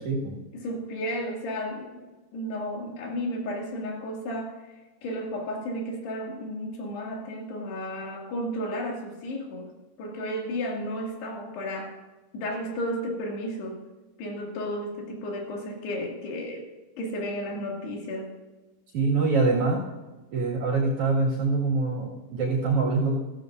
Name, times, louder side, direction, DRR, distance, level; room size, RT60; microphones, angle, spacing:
voice 1, 0.0-0.4 18.9-19.8 20.3-23.2, right 3 dB, 55° right, -3 dB, 3.1 m, -24 dB
voice 2, 0.5-4.6 5.0-9.7 10.0-12.0 12.3-13.8 14.2-16.7 17.0-18.3, equal, 90° left, -1 dB, 4.5 m, -33 dB
15.5 x 14.5 x 2.6 m, 1.2 s
omnidirectional pair, 4.6 m